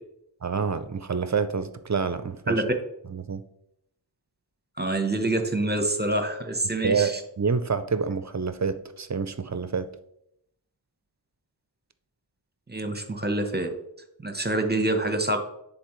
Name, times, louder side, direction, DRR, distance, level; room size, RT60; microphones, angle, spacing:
voice 1, 0.4-2.6 3.1-3.4 6.8-9.9, right 5 dB, 40° right, 12 dB, 0.5 m, -27 dB
voice 2, 4.8-7.1 12.7-13.7 14.2-15.4, right 2 dB, 20° right, 6 dB, 0.9 m, -26 dB
10.0 x 3.9 x 3.1 m, 0.77 s
wide cardioid pair, 50°, 46 cm